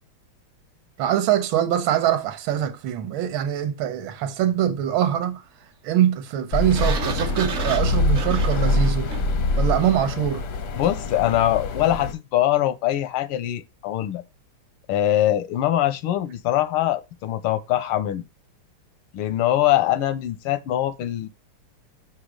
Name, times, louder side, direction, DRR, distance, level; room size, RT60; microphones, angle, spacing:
voice 1, 1.0-5.4 5.8-9.1 9.5-10.4, right 10 dB, 70° right, 1.5 m, -23 dB
sound 1, 6.5-12.1, left 2 dB, 65° left, 0.8 m, -24 dB
Sliding door, 6.7-9.5, right 6 dB, 50° right, 0.9 m, -32 dB
voice 2, 10.8-14.2 14.9-18.2 19.1-21.3, left 13 dB, 85° left, 1.5 m, -23 dB
5.9 x 5.0 x 4.9 m
omnidirectional pair, 2.4 m